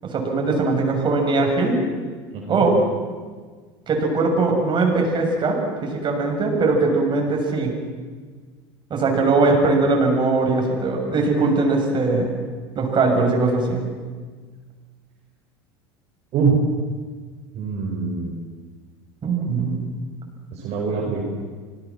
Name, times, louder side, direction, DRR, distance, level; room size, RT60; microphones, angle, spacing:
voice 1, 0.0-1.8 2.5-2.8 3.9-7.7 8.9-12.3 12.8-13.8 19.2-19.8, right 3 dB, 35° right, 1 dB, 7.2 m, -20 dB
voice 2, 2.3-2.7 16.3-16.5 17.6-18.4 20.5-21.2, right 5 dB, 50° right, -2 dB, 5.6 m, -24 dB
26.5 x 19.5 x 7.6 m, 1.5 s
hypercardioid pair, 80°, 14 cm